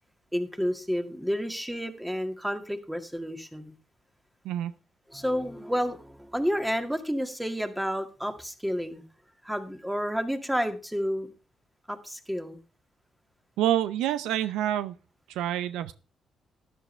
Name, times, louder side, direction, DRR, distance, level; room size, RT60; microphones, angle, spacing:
voice 1, 0.3-3.7 5.1-9.0 9.4-11.3 11.9-12.6, equal, 5° right, 7 dB, 2.0 m, -30 dB
voice 2, 13.6-14.9 15.3-15.9, right 11 dB, 85° right, 14 dB, 0.5 m, -27 dB
13.0 x 10.5 x 3.3 m, 0.34 s
supercardioid pair, 60°, 0 cm